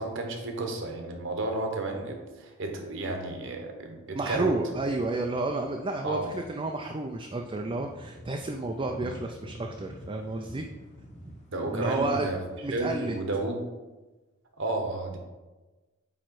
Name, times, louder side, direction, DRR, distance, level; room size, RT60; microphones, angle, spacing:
voice 1, 0.0-4.5 6.0-6.3 11.5-12.4 12.7-13.6 14.6-15.2, right 2 dB, 65° right, 3 dB, 1.1 m, -32 dB
sound 1, 4.1-12.9, equal, 35° left, 1.2 m, -47 dB
voice 2, 4.1-10.6 11.7-12.3 12.6-13.2, right 2 dB, 25° right, 2 dB, 0.4 m, -31 dB
8.7 x 3.1 x 4.7 m, 1.2 s
head